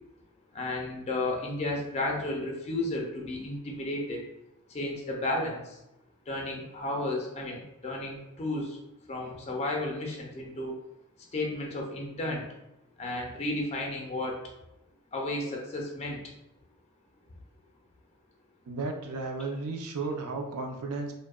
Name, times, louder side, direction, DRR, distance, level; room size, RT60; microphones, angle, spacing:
voice 1, 0.5-4.2 4.7-5.8 6.3-8.8 9.1-10.7 11.3-12.5 13.0-14.4 15.1-16.2, left 2 dB, 30° left, 0 dB, 0.4 m, -33 dB
voice 2, 18.7-21.2, right 3 dB, 80° right, 3 dB, 0.4 m, -34 dB
2.6 x 2.0 x 2.3 m, 0.87 s
head